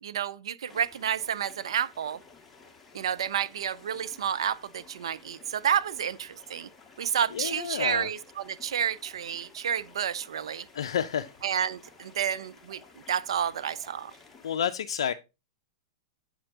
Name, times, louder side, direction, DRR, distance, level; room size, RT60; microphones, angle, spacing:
voice 1, 0.0-2.2 2.9-6.7 7.0-10.7 11.4-12.8 13.1-14.1, right 8 dB, 75° right, 0.4 m, -30 dB
sound 1, 0.7-14.6, left 4 dB, 10° left, 1.5 m, -54 dB
voice 2, 7.3-8.1 10.7-11.3 14.4-15.1, left 8 dB, 75° left, 0.4 m, -30 dB
7.8 x 4.4 x 3.7 m
hypercardioid pair, 120°, 3 cm